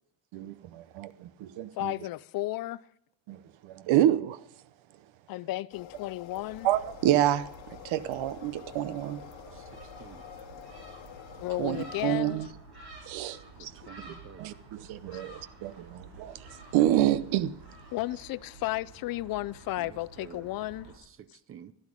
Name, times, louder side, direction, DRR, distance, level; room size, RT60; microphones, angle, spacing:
voice 1, 0.3-1.9 3.3-3.4 3.6-4.4 6.6-7.5 7.8-9.2 11.6-11.8 12.0-12.5 13.1-13.4 13.6-13.7 14.1-16.4 16.7-17.5, right 12 dB, 85° right, 0.8 m, -28 dB
voice 2, 1.8-2.8 5.3-6.7 11.4-12.4 13.6-13.7 15.1-15.2 17.9-20.9, left 17 dB, 50° left, 0.4 m, -33 dB
sound 1, 5.7-12.2, left 11 dB, 75° left, 1.2 m, -48 dB
Gull seagull, 6.4-21.0, right 2 dB, 55° right, 5.0 m, -50 dB
voice 3, 9.2-9.6 10.0-10.2 13.6-14.5 19.8-20.5 20.8-20.9 21.2-21.7, right 9 dB, 30° right, 0.5 m, -50 dB
12.5 x 12.0 x 5.0 m
cardioid pair, 160°, 46 cm